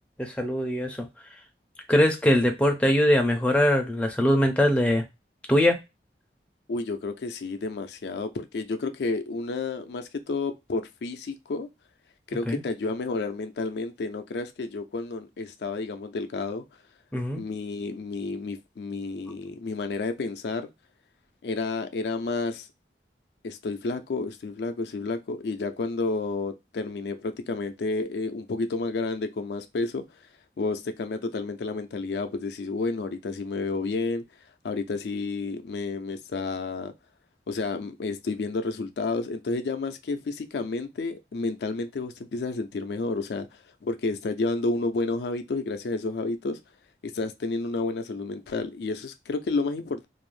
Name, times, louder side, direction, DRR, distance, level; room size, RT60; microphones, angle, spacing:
voice 1, 0.2-1.4 1.9-5.0 5.5-5.8 12.5-12.6 17.1-17.4, equal, 5° left, 0.4 m, -22 dB
voice 2, 6.7-11.7 12.3-16.6 17.3-20.7 21.4-22.7 23.4-30.0 30.6-34.2 34.6-36.9 37.5-43.5 43.8-46.6 47.0-50.1, left 3 dB, 70° left, 0.4 m, -30 dB
2.5 x 2.0 x 3.1 m
head